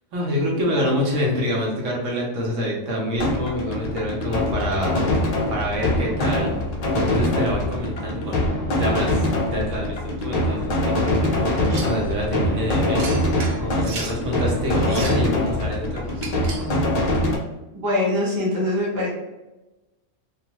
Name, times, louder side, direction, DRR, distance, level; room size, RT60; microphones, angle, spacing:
voice 1, 0.1-5.0 5.5-6.5 6.9-13.1 13.6-16.7, equal, 80° right, -2 dB, 1.0 m, -26 dB
sound 1, 3.2-17.4, left 1 dB, 70° left, 0.3 m, -23 dB
sound 2, 11.7-12.0 13.0-14.2 14.8-15.3 16.2-16.7, right 4 dB, 65° right, 0.5 m, -35 dB
voice 2, 17.7-19.1, left 1 dB, 20° right, -6 dB, 0.7 m, -23 dB
2.3 x 2.3 x 2.8 m, 1.0 s
omnidirectional pair, 1.3 m